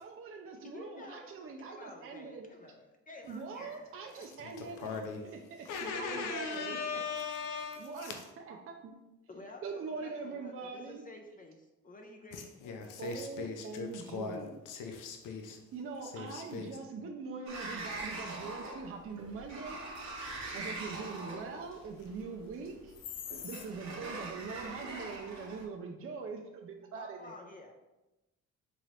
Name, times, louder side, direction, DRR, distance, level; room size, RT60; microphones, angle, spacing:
voice 1, 0.0-2.5 3.2-4.9 5.5-6.8 7.8-9.0 9.6-11.0 13.0-14.6 15.7-19.8 20.5-22.9 23.4-27.3, right 4 dB, 45° right, 2 dB, 0.5 m, -42 dB
voice 2, 0.6-4.2 9.3-12.7 27.0-27.7, left 2 dB, 30° left, 2 dB, 0.5 m, -51 dB
voice 3, 4.4-5.3 5.6-8.1 12.3-15.6 16.0-16.7 23.3-23.6, left 5 dB, 85° left, 4 dB, 0.6 m, -39 dB
Sliding door, 17.5-25.6, right 2 dB, 65° right, 0.9 m, -43 dB
3.8 x 3.0 x 3.1 m, 1.0 s
cardioid pair, 90°, 30 cm